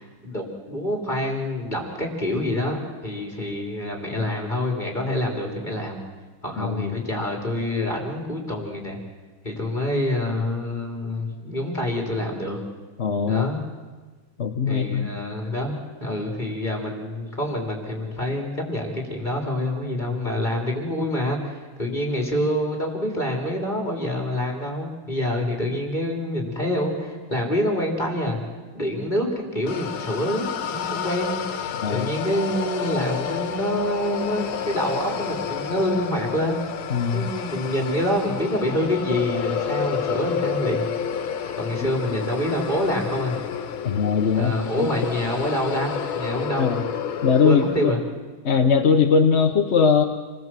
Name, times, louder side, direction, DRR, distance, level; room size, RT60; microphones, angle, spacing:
voice 1, 0.0-6.0 6.4-9.0 9.4-12.6 13.3-13.6 14.7-28.4 28.7-31.3 31.9-36.6 37.1-40.9 41.6-43.4 44.3-46.7 47.4-48.0, left 1 dB, 20° left, 1 dB, 3.6 m, -26 dB
voice 2, 6.6-6.9 13.0-13.5 14.4-15.1 31.8-32.1 36.9-37.3 43.8-44.9 46.6-46.8 47.2-47.9 48.4-50.0, left 6 dB, 40° left, 4 dB, 1.1 m, -20 dB
sound 1, 29.7-47.9, left 7 dB, 75° left, 1.9 m, -30 dB
28.0 x 20.5 x 7.6 m, 1.3 s
omnidirectional pair, 2.2 m